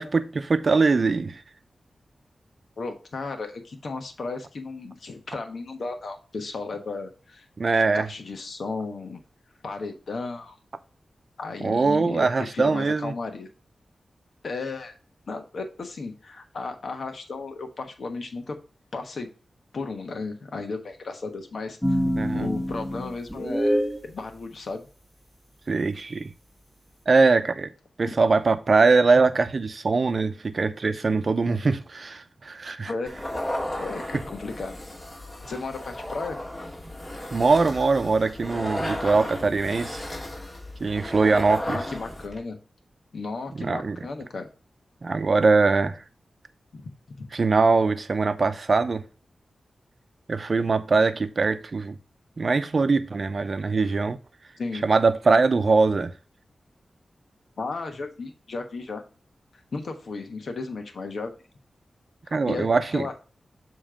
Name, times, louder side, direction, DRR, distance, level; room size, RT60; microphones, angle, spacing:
voice 1, 0.0-1.4 7.6-8.1 11.6-13.1 22.1-22.5 25.7-26.3 27.1-27.7 28.0-32.9 37.3-40.0 40.8-41.8 43.6-44.0 45.0-46.0 47.3-49.0 50.3-51.9 52.4-54.2 54.8-56.1 62.3-63.0, right 4 dB, 55° right, 0.7 m, -22 dB
voice 2, 2.8-7.5 7.9-9.2 9.6-10.6 11.4-13.5 14.4-15.0 15.3-18.6 18.9-19.3 19.7-22.0 22.3-23.8 24.0-24.8 32.9-33.2 33.8-34.8 35.5-36.4 41.6-42.6 43.1-44.5 46.7-46.8 47.2-47.3 54.6-54.8 57.6-59.0 59.7-61.3 62.2-63.1, left 3 dB, 70° left, 1.2 m, -34 dB
sound 1, 21.8-24.0, equal, 10° left, 1.3 m, -25 dB
sound 2, 33.1-42.4, left 1 dB, 30° left, 2.5 m, -34 dB
7.2 x 3.2 x 5.0 m
cardioid pair, 60°, 0 cm